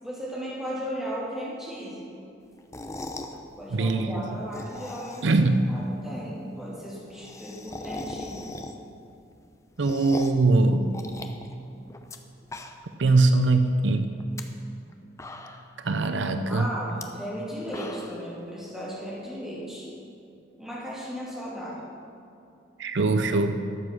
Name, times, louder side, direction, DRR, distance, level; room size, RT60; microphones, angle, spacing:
voice 1, 0.0-2.0 3.6-8.4 16.5-19.9 20.6-21.8, equal, 5° right, -8 dB, 2.9 m, -36 dB
sound 1, 2.6-3.4 4.4-5.5 5.8-5.9 6.1-6.2 6.4-6.5 6.8-9.0 9.4-10.5 10.9-12.2 12.4-13.0 13.4-13.5 14.1-14.4 14.9-15.0 15.2-15.8 16.9-17.0 17.5-18.3, left 2 dB, 15° left, 0.5 m, -39 dB
voice 2, 3.7-4.2 5.2-5.7 9.8-10.9 13.0-14.1 15.8-16.7 22.8-23.6, right 3 dB, 80° right, 8 dB, 0.6 m, -22 dB
13.0 x 7.6 x 6.2 m, 2.6 s
head